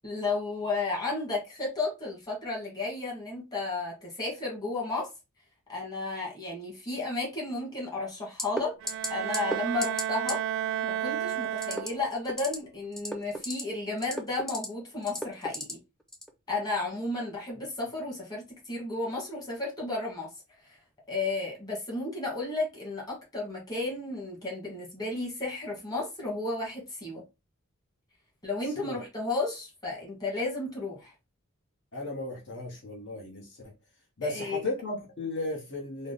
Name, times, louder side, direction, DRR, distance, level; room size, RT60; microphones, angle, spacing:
voice 1, 0.0-5.1 5.7-8.7 9.1-10.4 10.8-15.8 16.5-20.3 20.6-20.8 21.1-27.2 28.4-31.1 34.2-34.6, left 3 dB, 20° left, 1.5 m, -33 dB
sound 1, 8.4-8.6 8.9-9.1 9.3-9.6 9.8-10.0 10.3-10.4 11.6-11.9 12.2-12.5 12.9-13.6 14.0-14.6 15.1-15.7 16.1-16.3, equal, ahead, 0.5 m, -32 dB
Bowed string instrument, 8.8-12.3, right 10 dB, 65° right, 0.3 m, -32 dB
voice 2, 31.9-33.7 34.2-36.1, left 2 dB, 60° left, 1.0 m, -35 dB
3.6 x 2.0 x 3.8 m
head